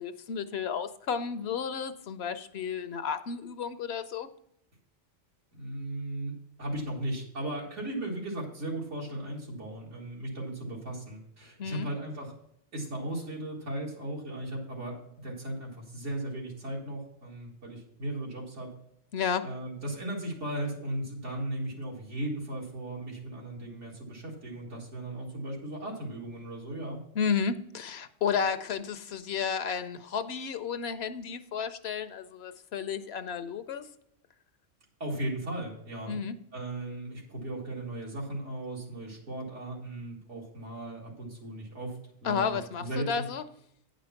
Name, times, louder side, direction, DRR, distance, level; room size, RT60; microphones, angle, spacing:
voice 1, 0.0-4.3 11.6-11.9 19.1-19.5 27.2-33.9 36.1-36.3 42.2-43.4, left 6 dB, 65° left, 11 dB, 0.8 m, -32 dB
voice 2, 5.5-6.3 6.6-12.3 12.7-18.7 19.4-27.0 35.0-36.2 36.5-43.2, right 1 dB, 80° right, -3 dB, 2.3 m, -37 dB
9.4 x 5.1 x 5.7 m, 0.74 s
omnidirectional pair, 1.2 m